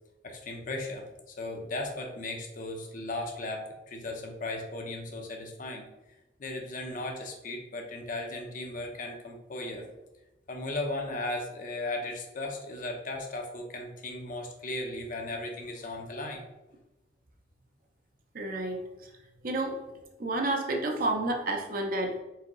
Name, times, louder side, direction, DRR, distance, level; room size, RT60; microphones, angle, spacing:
voice 1, 0.2-5.9 6.4-9.8 10.5-16.4, left 2 dB, 45° left, 2 dB, 0.7 m, -36 dB
voice 2, 18.3-18.9 19.4-19.8 20.2-22.2, right 2 dB, 50° right, 2 dB, 0.7 m, -30 dB
4.7 x 3.6 x 3.0 m, 0.97 s
head